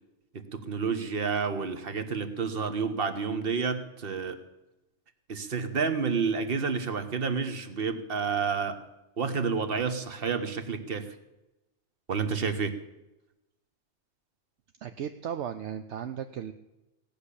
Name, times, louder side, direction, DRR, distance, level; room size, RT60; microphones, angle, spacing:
voice 1, 0.3-4.4 5.3-8.8 9.2-11.1 12.1-12.7, right 5 dB, 50° right, 10 dB, 1.4 m, -30 dB
voice 2, 14.8-16.5, right 9 dB, 70° right, 8 dB, 1.0 m, -36 dB
17.5 x 6.8 x 10.0 m, 0.97 s
omnidirectional pair, 1.2 m